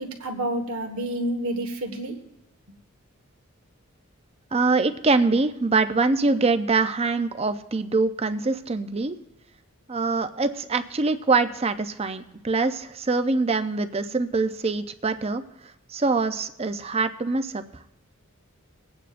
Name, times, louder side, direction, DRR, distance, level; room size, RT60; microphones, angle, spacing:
voice 1, 0.0-2.2, right 1 dB, 75° right, 3 dB, 1.5 m, -29 dB
voice 2, 4.5-9.2 9.9-15.4 15.9-17.6, right 3 dB, 30° right, 10 dB, 0.6 m, -24 dB
22.0 x 8.9 x 2.5 m, 0.92 s
head